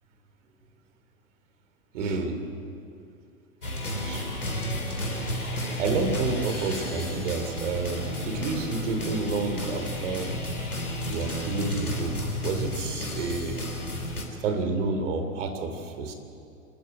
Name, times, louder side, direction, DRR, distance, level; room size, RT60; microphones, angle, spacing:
voice 1, 1.9-2.4 4.0-4.3 4.9-5.0 5.5-10.3 11.1-13.6 14.4-16.1, right 4 dB, 55° right, 7 dB, 3.2 m, -30 dB
sound 1, 3.6-14.2, left 1 dB, 85° left, 3.7 m, -32 dB
26.5 x 14.5 x 9.0 m, 2.6 s
figure-of-eight pair, 100°, 43 cm